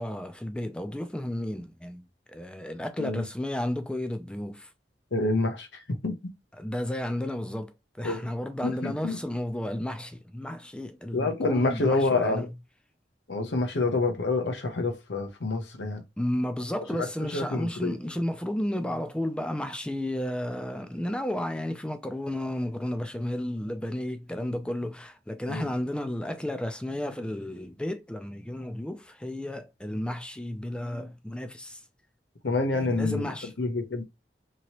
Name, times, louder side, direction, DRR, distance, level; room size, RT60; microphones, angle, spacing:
voice 1, 0.0-4.7 6.6-12.5 16.2-31.8 32.7-33.5, left 1 dB, 5° left, 0.3 m, -33 dB
voice 2, 5.1-6.2 8.0-8.2 8.6-9.2 11.1-12.5 13.3-16.0 17.0-18.0 25.5-25.7 32.4-34.0, left 3 dB, 85° left, 0.7 m, -28 dB
2.9 x 2.8 x 2.9 m
head